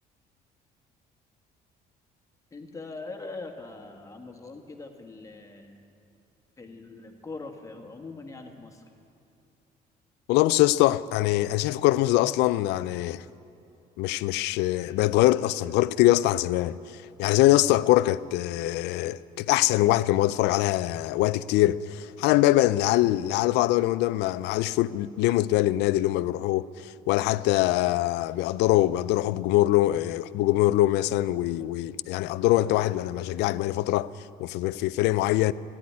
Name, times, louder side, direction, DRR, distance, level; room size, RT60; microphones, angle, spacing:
voice 1, 2.5-5.8 6.6-8.8, left 3 dB, 20° left, 1.6 m, -42 dB
voice 2, 10.3-13.2 14.0-35.5, left 16 dB, 90° left, 0.4 m, -23 dB
13.5 x 10.0 x 9.6 m
cardioid pair, 110°, 17 cm